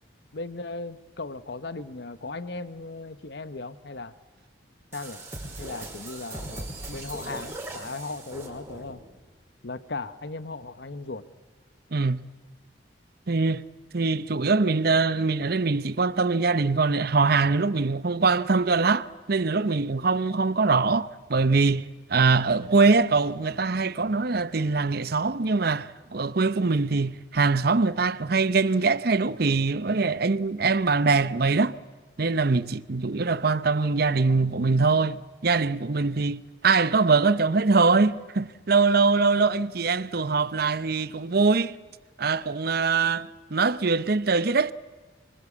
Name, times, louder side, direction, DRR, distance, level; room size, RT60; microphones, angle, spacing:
voice 1, 0.3-4.1 4.9-5.2 5.6-9.0 9.6-11.3, left 3 dB, 60° left, 1.0 m, -37 dB
sound 1, 4.9-9.1, right 2 dB, 15° right, 5.1 m, -39 dB
voice 2, 11.9-12.2 13.3-13.6 13.9-31.8 32.2-41.8 42.2-44.7, right 4 dB, 55° right, 0.8 m, -23 dB
25.5 x 25.0 x 8.5 m
head